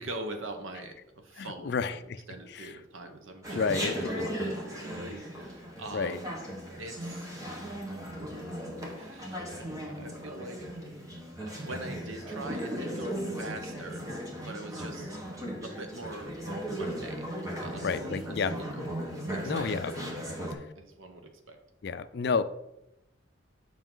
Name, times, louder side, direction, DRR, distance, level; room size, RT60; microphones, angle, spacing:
voice 1, 0.0-6.3 6.8-7.3 8.9-10.6 11.5-15.2 15.6-16.3 16.7-18.8 19.3-20.0 20.8-21.6, right 2 dB, 85° right, 6 dB, 1.0 m, -43 dB
voice 2, 1.4-2.2 2.5-2.7 3.5-4.1 5.9-6.2 17.8-18.9 19.4-19.9 20.5-20.6 21.8-22.4, left 5 dB, 55° left, 13 dB, 0.4 m, -31 dB
Chatter, 3.4-20.5, equal, 15° right, 1.3 m, -37 dB
7.1 x 5.3 x 3.8 m, 0.85 s
head